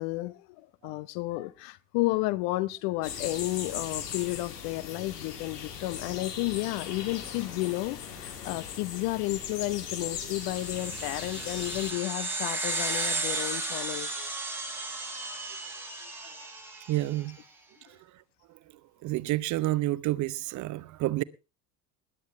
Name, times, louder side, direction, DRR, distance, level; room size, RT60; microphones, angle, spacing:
voice 1, 0.0-14.3, left 19 dB, 55° left, 0.9 m, -32 dB
sound 1, 3.0-11.9, left 8 dB, 75° left, 2.7 m, -39 dB
sound 2, 10.3-17.1, right 2 dB, 5° right, 5.1 m, -34 dB
voice 2, 16.9-17.4 17.9-18.0 19.0-21.2, right 16 dB, 40° right, 0.6 m, -29 dB
20.5 x 11.0 x 3.3 m
figure-of-eight pair, 65°, 47 cm